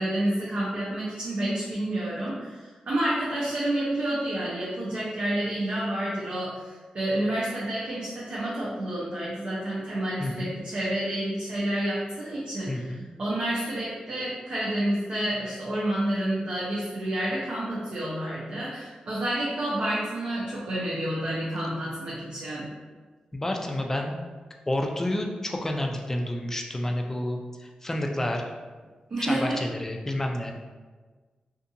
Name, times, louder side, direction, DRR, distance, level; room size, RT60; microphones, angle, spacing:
voice 1, 0.0-22.7 29.1-29.6, right 1 dB, 55° right, -8 dB, 0.6 m, -29 dB
voice 2, 10.2-10.5 12.7-13.0 23.3-24.2 24.7-28.5 29.2-30.5, left 1 dB, 20° left, 2 dB, 0.3 m, -29 dB
2.5 x 2.5 x 2.6 m, 1.4 s
wide cardioid pair, 100°, 2 cm